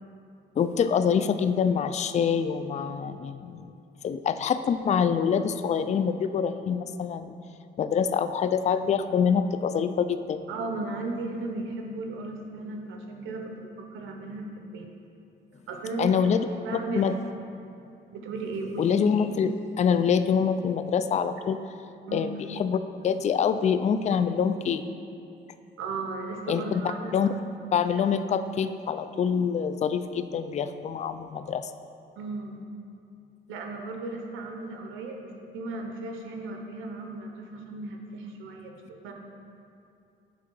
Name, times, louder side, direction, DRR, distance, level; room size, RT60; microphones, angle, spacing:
voice 1, 0.6-3.7 4.0-7.3 7.8-10.5 16.0-16.5 16.9-17.1 18.8-21.6 22.1-24.8 26.5-26.8 27.1-27.4 27.7-31.7, left 7 dB, 35° left, 11 dB, 0.3 m, -25 dB
voice 2, 10.5-14.9 15.7-17.2 18.1-18.8 22.1-22.3 25.8-27.4 32.2-32.6 33.5-39.1, right 3 dB, 85° right, 3 dB, 0.8 m, -36 dB
8.5 x 3.7 x 5.3 m, 2.6 s
cardioid pair, 90°, 20 cm